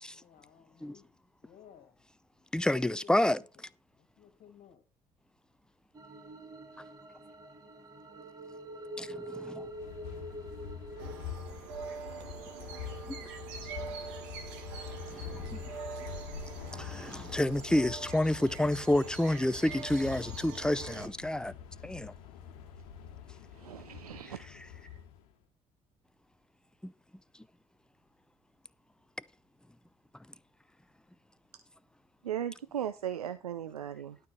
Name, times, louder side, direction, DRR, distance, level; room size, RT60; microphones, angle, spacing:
voice 1, 0.0-2.0 2.4-4.9, left 8 dB, 50° left, 2.2 m, -58 dB
voice 2, 2.5-3.4 9.0-9.7 13.1-13.2 15.1-15.6 16.7-21.5 21.8-22.1 26.8-26.9, left 1 dB, 5° left, 0.6 m, -29 dB
sound 1, 5.9-11.2, right 1 dB, 20° right, 1.8 m, -45 dB
sound 2, 9.6-25.3, left 8 dB, 70° left, 1.3 m, -45 dB
sound 3, 11.0-21.1, right 6 dB, 65° right, 2.2 m, -44 dB
voice 3, 23.5-24.5 24.8-25.0 32.2-34.2, right 10 dB, 85° right, 0.6 m, -37 dB
12.0 x 4.7 x 6.1 m
figure-of-eight pair, 50°, 19 cm